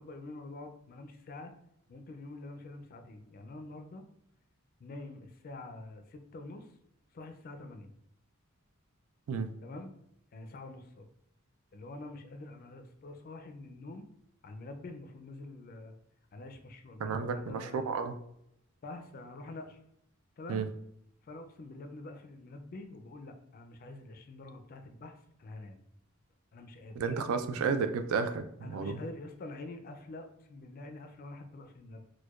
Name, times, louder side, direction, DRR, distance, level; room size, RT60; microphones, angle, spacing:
voice 1, 0.0-1.5 1.9-4.1 4.8-6.7 7.1-7.9 9.6-9.9 10.3-11.1 11.7-14.1 14.4-15.9 16.3-17.9 18.8-19.8 20.4-20.7 21.2-25.8 26.5-27.2 28.6-32.0, left 2 dB, 40° left, 6 dB, 0.3 m, -46 dB
voice 2, 17.0-18.1 20.5-20.7 27.0-29.0, right 5 dB, 75° right, 8 dB, 0.3 m, -32 dB
4.5 x 2.1 x 2.3 m, 0.77 s
head